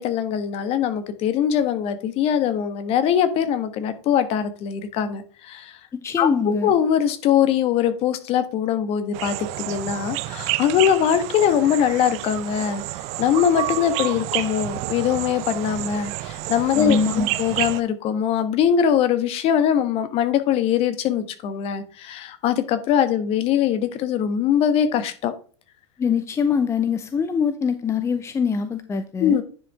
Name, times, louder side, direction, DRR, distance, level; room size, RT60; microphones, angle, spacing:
voice 1, 0.0-5.8 6.2-12.8 13.2-17.0 17.4-25.3 29.2-29.4, left 9 dB, 45° left, 11 dB, 1.2 m, -22 dB
voice 2, 5.9-6.7 16.8-17.3 26.0-29.4, left 6 dB, 20° left, 11 dB, 0.6 m, -23 dB
sound 1, 9.1-17.8, right 17 dB, 50° right, 0.6 m, -29 dB
10.0 x 5.2 x 3.5 m, 0.41 s
hypercardioid pair, 95°, 15 cm